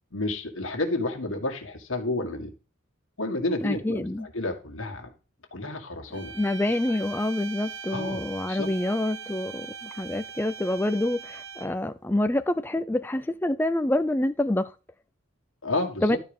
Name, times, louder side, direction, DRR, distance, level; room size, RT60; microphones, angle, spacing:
voice 1, 0.1-2.5 3.2-5.1 5.5-6.3 6.9-7.0 7.9-8.7 15.6-16.2, left 2 dB, 85° left, 1.9 m, -31 dB
voice 2, 3.6-4.3 6.3-14.7 16.0-16.2, left 1 dB, 10° left, 0.4 m, -27 dB
sound 1, 6.1-11.9, right 6 dB, 60° right, 1.2 m, -41 dB
11.5 x 4.7 x 5.2 m
head